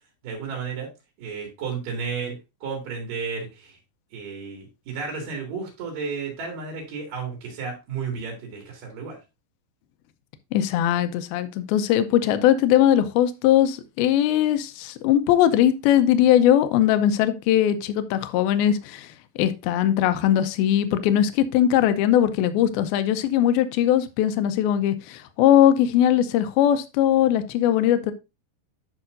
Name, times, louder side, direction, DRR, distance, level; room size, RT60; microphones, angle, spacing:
voice 1, 0.2-0.9 1.2-2.3 2.6-3.8 4.1-9.2, right 5 dB, 60° right, 3.8 m, -32 dB
voice 2, 10.5-19.1 19.4-28.1, left 11 dB, 80° left, 2.4 m, -20 dB
10.5 x 5.8 x 2.6 m
omnidirectional pair, 4.6 m